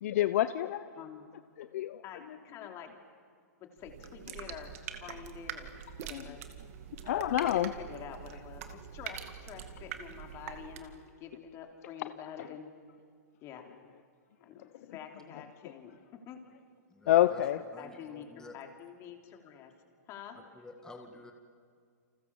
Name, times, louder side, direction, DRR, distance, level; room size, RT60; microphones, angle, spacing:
voice 1, 0.0-0.9 1.6-2.4 6.1-6.3 7.0-7.7 12.4-12.5 17.1-17.6, left 13 dB, 60° left, 12 dB, 0.8 m, -28 dB
voice 2, 2.0-2.9 3.6-5.7 6.0-6.4 7.8-12.7 13.4-13.7 14.4-16.4 17.5-18.3 18.5-19.7 20.1-20.4, left 8 dB, 30° left, 3 dB, 3.4 m, -47 dB
sound 1, 3.8-11.0, right 9 dB, 55° right, 2.2 m, -44 dB
voice 3, 16.9-17.4 17.7-18.6 20.5-21.3, left 2 dB, 5° left, 3 dB, 2.0 m, -50 dB
29.5 x 27.5 x 7.2 m, 2.2 s
hypercardioid pair, 145°, 9 cm